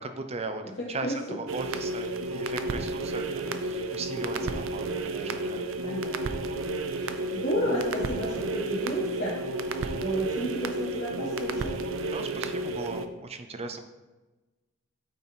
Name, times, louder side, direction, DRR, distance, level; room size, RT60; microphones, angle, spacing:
voice 1, 0.0-5.6 6.7-6.8 9.8-9.9 12.1-13.8, right 3 dB, 30° right, 7 dB, 0.6 m, -38 dB
voice 2, 0.8-1.4 4.4-4.5 5.8-6.4 6.9-9.4 9.9-11.7, equal, 60° left, -6 dB, 1.3 m, -32 dB
sound 1, 1.5-13.1, right 2 dB, 90° right, 0.5 m, -32 dB
8.9 x 4.1 x 4.4 m, 1.1 s
head